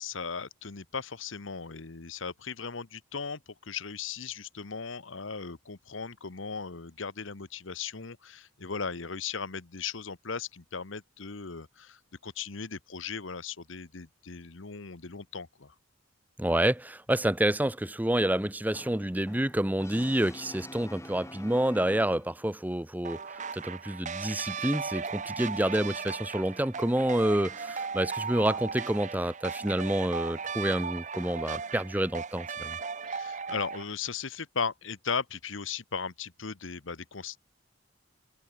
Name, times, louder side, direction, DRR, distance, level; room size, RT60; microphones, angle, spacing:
voice 1, 0.0-15.7 33.0-37.4, left 5 dB, 75° left, 1.2 m, -37 dB
voice 2, 16.4-23.2 23.5-32.8, right 1 dB, 10° right, 0.8 m, -28 dB
Brass instrument, 18.7-22.5, left 1 dB, 15° left, 3.7 m, -47 dB
sound 1, 23.0-33.8, right 5 dB, 35° right, 0.9 m, -37 dB
head